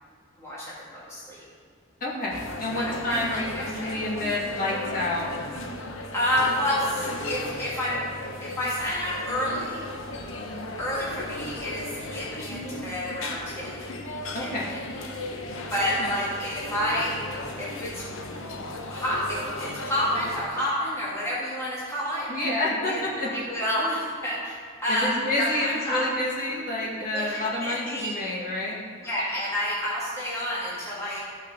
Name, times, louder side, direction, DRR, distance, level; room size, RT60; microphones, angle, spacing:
voice 1, 0.4-1.4 2.7-3.4 3.8-3.9 6.1-8.0 8.4-9.8 10.8-13.9 14.4-14.5 15.1-15.2 15.7-17.1 17.6-18.4 18.9-22.3 22.8-23.0 23.3-24.6 24.8-26.0 27.1-28.1 29.0-31.2, equal, 15° left, -8 dB, 1.8 m, -29 dB
voice 2, 2.0-5.3 10.5-10.7 14.3-14.7 16.0-16.1 22.3-23.3 24.9-28.8, left 1 dB, 40° left, -5 dB, 1.9 m, -29 dB
sound 1, 2.3-20.5, left 2 dB, 80° left, 0.9 m, -36 dB
13.5 x 5.9 x 4.0 m, 2.1 s
head